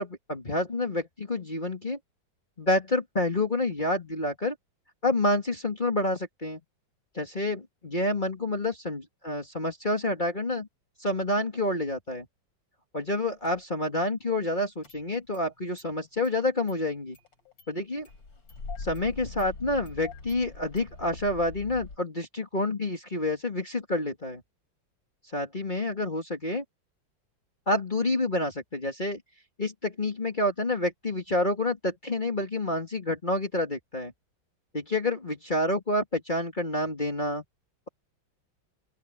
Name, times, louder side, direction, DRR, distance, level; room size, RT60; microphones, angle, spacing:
voice 1, 0.0-2.0 2.6-4.5 5.0-6.6 7.1-10.7 11.0-12.3 12.9-17.2 17.7-18.1 18.8-24.4 25.3-26.6 27.7-29.2 29.6-34.1 34.7-37.4, left 1 dB, 25° left, 2.7 m, -28 dB
Engine starting, 13.4-13.5 14.8-15.5 15.8-15.9 16.2-16.4 16.7-16.8 17.1-17.7 18.0-22.0, left 4 dB, 75° left, 4.7 m, -43 dB
open air
omnidirectional pair, 2.1 m